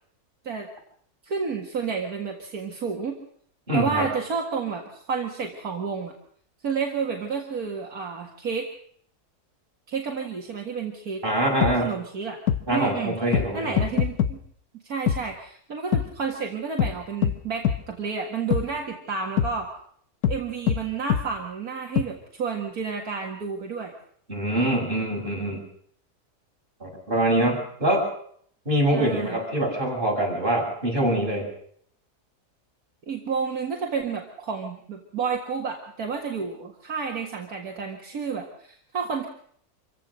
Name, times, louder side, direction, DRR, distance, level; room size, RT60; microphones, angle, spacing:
voice 1, 1.2-3.2 3.7-6.1 6.6-8.7 9.9-11.2 11.7-12.4 12.7-13.2 13.5-14.4 14.8-19.7 20.3-23.9 28.9-29.4 33.1-39.3, right 5 dB, 65° right, 1 dB, 2.3 m, -30 dB
voice 2, 3.7-4.1 11.2-11.9 12.7-13.8 24.3-25.6 26.8-28.1 28.7-31.5, right 1 dB, 30° right, -2 dB, 7.3 m, -24 dB
sound 1, 11.6-11.7 12.5-12.6 13.3-13.5 13.8-14.3 15.1-15.2 15.9-16.1 16.8-16.9 17.2-17.4 17.6-17.8 18.5-18.6 19.4-19.5 20.2-20.4 20.7-20.8 21.1-21.2 22.0-22.1, left 9 dB, 70° left, 1.5 m, -22 dB
26.0 x 16.0 x 6.4 m, 0.63 s
omnidirectional pair, 1.7 m